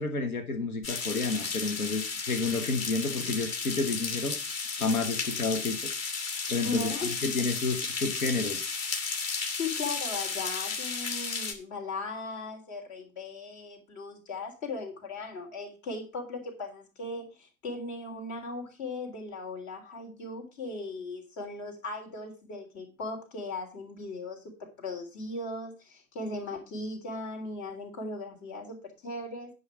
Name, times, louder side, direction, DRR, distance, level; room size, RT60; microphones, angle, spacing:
voice 1, 0.0-4.4 4.7-5.8 6.5-6.9 7.2-8.7, left 3 dB, 80° left, 9 dB, 1.1 m, -30 dB
sound 1, 0.8-11.5, left 4 dB, 35° left, 1.8 m, -33 dB
voice 2, 6.6-7.1 7.4-7.5 9.6-24.4 24.8-29.5, left 3 dB, 60° left, 1 dB, 3.5 m, -38 dB
9.7 x 5.5 x 6.0 m, 0.32 s
figure-of-eight pair, 70°, 42 cm